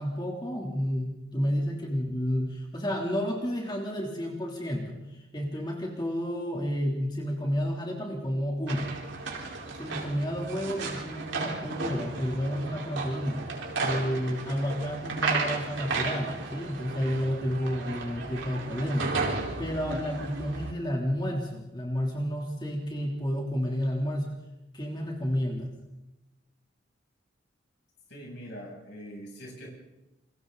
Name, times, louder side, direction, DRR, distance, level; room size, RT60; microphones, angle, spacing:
voice 1, 0.0-8.9 9.8-13.4 13.8-19.1 19.6-24.3 24.7-25.7, equal, 25° left, -1 dB, 3.2 m, -31 dB
sound 1, 8.7-20.7, right 3 dB, 85° right, 4.5 m, -34 dB
voice 2, 28.1-29.7, equal, 60° left, -1 dB, 7.8 m, -43 dB
29.0 x 23.0 x 4.0 m, 0.98 s
head